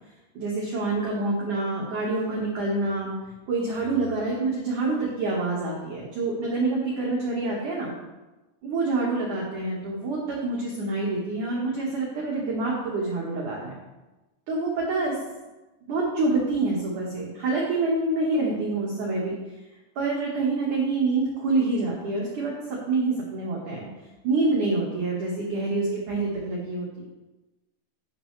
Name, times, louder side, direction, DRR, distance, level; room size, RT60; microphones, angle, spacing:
voice 1, 0.3-3.1 3.5-7.9 8.6-13.8 14.5-15.2 15.9-19.3 20.0-23.9 24.2-27.0, right 3 dB, 60° right, -4 dB, 2.2 m, -27 dB
11.5 x 11.0 x 3.3 m, 1.1 s
omnidirectional pair, 5.8 m